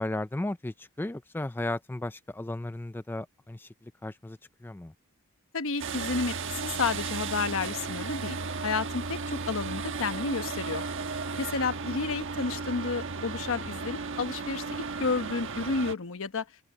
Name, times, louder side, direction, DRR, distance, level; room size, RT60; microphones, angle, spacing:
voice 1, 0.0-4.9, left 1 dB, 10° left, 0.3 m, -35 dB
voice 2, 5.5-8.4 8.6-10.8 11.4-16.5, left 4 dB, 65° left, 1.1 m, -31 dB
sound 1, 5.8-15.9, right 4 dB, 60° right, 1.3 m, -35 dB
open air
head